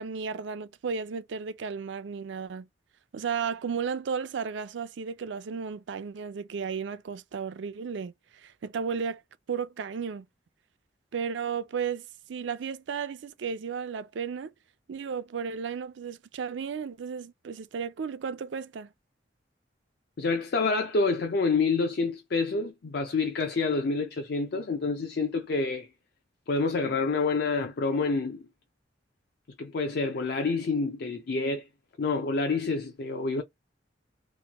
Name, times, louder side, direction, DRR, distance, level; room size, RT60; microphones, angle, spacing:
voice 1, 0.0-2.7 3.1-8.1 8.4-9.2 9.5-10.3 11.1-14.5 14.9-18.9, right 6 dB, 75° right, 0.4 m, -34 dB
voice 2, 20.2-25.9 26.5-28.4 29.6-31.7 32.0-33.4, left 4 dB, 60° left, 0.5 m, -28 dB
3.0 x 2.2 x 2.9 m
head